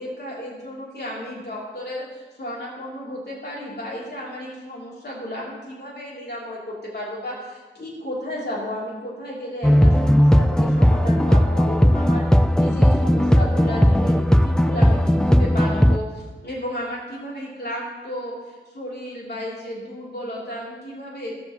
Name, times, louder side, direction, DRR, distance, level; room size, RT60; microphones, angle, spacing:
voice 1, 0.0-12.2 12.6-21.4, equal, 55° left, -6 dB, 3.1 m, -33 dB
sound 1, 9.6-16.0, equal, 5° left, 0.4 m, -17 dB
16.5 x 7.2 x 3.0 m, 1.3 s
wide cardioid pair, 60°, 20 cm